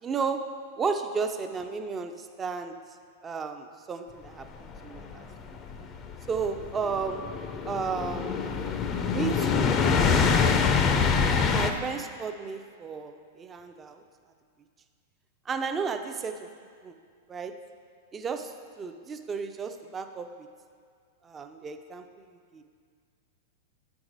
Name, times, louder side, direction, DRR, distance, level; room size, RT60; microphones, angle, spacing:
voice 1, 0.0-2.8 3.2-5.2 6.3-7.3 7.7-8.3 9.1-9.8 11.5-14.0 15.5-16.5 16.8-17.0 17.3-17.6 18.1-20.5 21.2-22.6, right 5 dB, 20° right, 7 dB, 0.4 m, -33 dB
sound 1, 4.7-11.7, left 5 dB, 35° left, 0.5 m, -25 dB
8.1 x 4.7 x 3.9 m, 2.1 s
hypercardioid pair, 110°, 0 cm